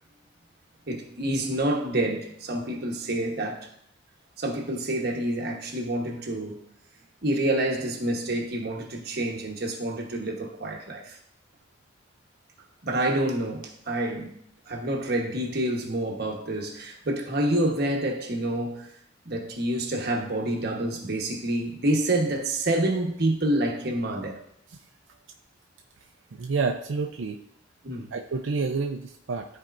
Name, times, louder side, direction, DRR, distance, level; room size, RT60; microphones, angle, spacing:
voice 1, 0.9-3.7 4.4-6.6 7.2-11.2 12.8-14.3 14.7-18.9 19.3-24.4 27.8-28.1, right 1 dB, 55° right, 1.2 m, -28 dB
voice 2, 26.4-27.4 28.1-29.5, right 4 dB, 90° right, 0.5 m, -28 dB
13.0 x 4.4 x 2.6 m
head